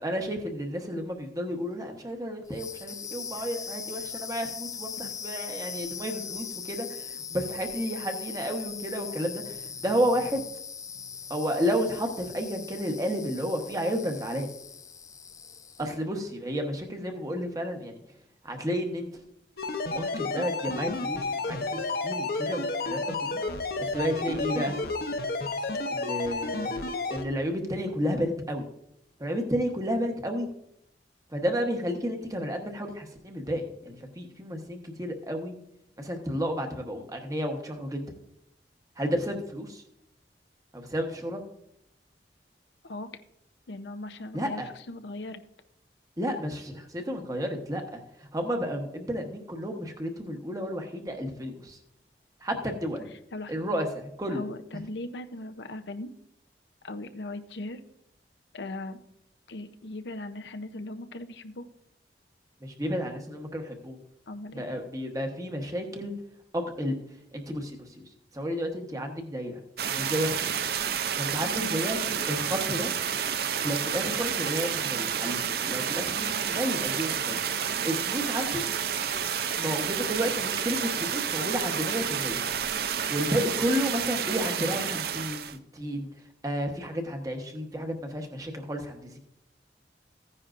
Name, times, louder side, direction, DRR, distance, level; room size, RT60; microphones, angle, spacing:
voice 1, 0.0-10.4 11.3-14.5 15.8-18.0 18.4-19.2 19.9-23.4 23.8-24.8 25.9-26.7 27.1-28.6 29.2-30.5 31.3-35.5 36.0-38.0 39.0-39.8 40.7-41.4 44.3-44.7 46.2-51.8 52.4-53.1 53.5-54.5 62.6-64.0 64.5-66.1 66.5-67.0 67.3-68.0 68.3-69.6 69.9-70.5 71.2-72.9 73.6-78.5 79.6-82.4 83.1-86.1 86.4-89.2, equal, 20° right, 4 dB, 1.1 m, -31 dB
sound 1, 2.4-16.0, left 7 dB, 20° left, 0.4 m, -40 dB
sound 2, 19.6-27.2, left 3 dB, 60° left, 0.9 m, -31 dB
voice 2, 43.7-45.4 52.6-52.7 53.3-53.8 54.3-56.1 56.8-57.8 58.5-59.0 59.5-61.7 64.3-64.6 71.6-72.0, left 2 dB, 80° left, 8 dB, 0.7 m, -39 dB
sound 3, 69.8-85.6, right 8 dB, 60° right, 0.5 m, -30 dB
15.0 x 9.8 x 2.5 m, 0.77 s
head